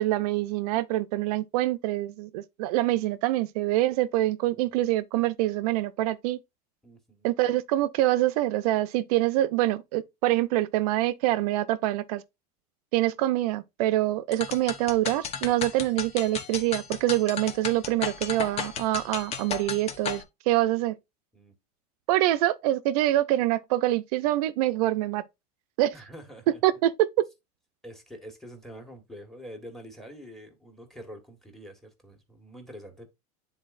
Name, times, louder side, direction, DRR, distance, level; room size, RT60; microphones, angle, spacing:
voice 1, 0.0-6.4 7.2-12.2 12.9-20.9 22.1-25.2 25.8-25.9 26.6-27.3, right 15 dB, 75° right, 0.6 m, -25 dB
voice 2, 6.8-7.3 21.3-21.5 25.9-26.6 27.8-33.1, equal, ahead, 1.6 m, -46 dB
sound 1, 14.3-20.2, left 6 dB, 35° left, 0.9 m, -34 dB
9.7 x 4.0 x 2.5 m
supercardioid pair, 125°, 20 cm